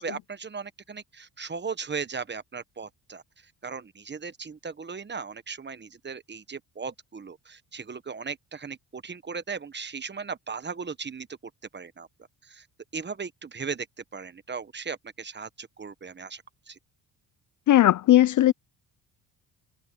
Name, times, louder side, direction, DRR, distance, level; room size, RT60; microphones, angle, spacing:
voice 1, 0.0-3.2 3.6-12.1 12.4-12.6 12.9-13.9 14.1-16.4 16.7-16.8, right 5 dB, 25° right, 1.2 m, -37 dB
voice 2, 17.7-18.5, left 13 dB, 50° left, 0.5 m, -17 dB
cardioid pair, 95°, 40 cm